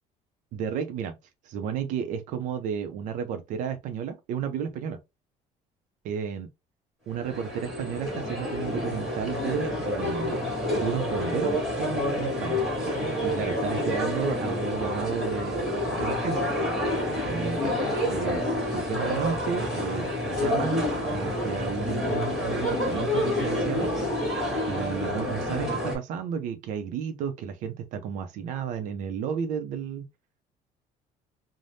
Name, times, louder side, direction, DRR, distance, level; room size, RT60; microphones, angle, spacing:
voice 1, 0.5-1.2 1.4-5.0 6.0-6.5 7.1-12.6 13.2-16.5 17.3-17.7 18.0-23.9 24.7-30.1, right 7 dB, 60° right, 0.4 m, -32 dB
sound 1, 7.1-26.0, left 1 dB, ahead, 1.5 m, -28 dB
3.2 x 2.0 x 2.6 m
cardioid pair, 175°, 15 cm